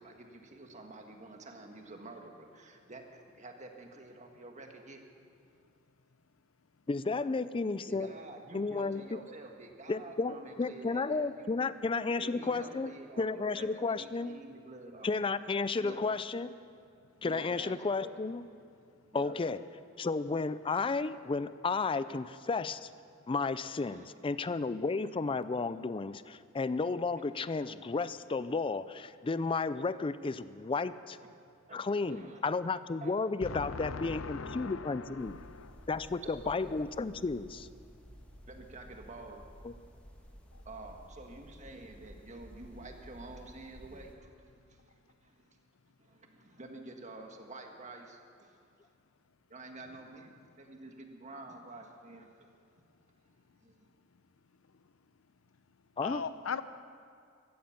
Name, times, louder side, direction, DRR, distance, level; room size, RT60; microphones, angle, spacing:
voice 1, 0.0-5.0 7.9-11.6 11.9-15.3 15.8-16.1 17.2-18.1 19.1-19.4 23.8-24.1 31.7-32.4 33.0-33.1 36.2-36.8 38.5-39.5 40.6-45.6 46.0-48.6 49.5-50.3 50.6-52.5 53.6-53.9, right 2 dB, 35° right, 3 dB, 1.6 m, -49 dB
voice 2, 6.9-8.1 8.5-9.2 9.9-14.3 15.0-16.5 17.2-18.4 19.1-19.6 20.0-22.9 23.3-31.2 31.7-35.4 35.9-37.7 39.6-39.7 56.0-56.2, left 4 dB, 25° left, 15 dB, 0.4 m, -33 dB
voice 3, 33.4-35.9 56.0-56.6, left 5 dB, 80° left, 13 dB, 0.7 m, -39 dB
sound 1, 35.2-44.2, equal, 5° left, 1.5 m, -53 dB
16.5 x 14.0 x 5.8 m, 2.3 s
head